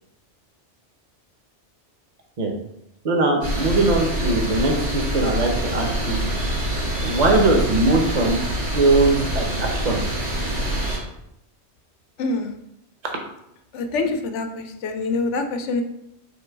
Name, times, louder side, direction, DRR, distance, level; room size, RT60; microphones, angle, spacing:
voice 1, 3.0-6.3 7.0-8.4 8.7-10.0 10.5-10.8 13.0-13.1, right 2 dB, 45° right, 2 dB, 0.7 m, -21 dB
sound 1, 3.4-11.0, right 1 dB, 85° right, 1.8 m, -25 dB
voice 2, 12.2-12.6 13.7-15.8, left 3 dB, 80° left, 7 dB, 0.9 m, -25 dB
3.8 x 3.0 x 4.5 m, 0.81 s
omnidirectional pair, 1.2 m